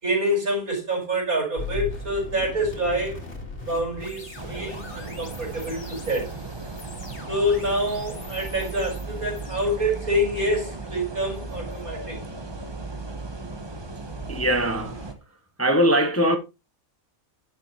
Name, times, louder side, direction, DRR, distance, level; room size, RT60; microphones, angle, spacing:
voice 1, 0.0-3.2 3.7-6.3 7.3-12.2, equal, 80° right, 5.5 m, -26 dB
sound 1, 1.6-12.6, left 3 dB, 50° left, 2.3 m, -40 dB
sound 2, 4.4-15.1, right 3 dB, 20° right, 0.9 m, -36 dB
voice 2, 14.3-15.1 15.6-16.4, equal, 10° left, 0.8 m, -21 dB
11.0 x 6.8 x 3.1 m
omnidirectional pair, 1.5 m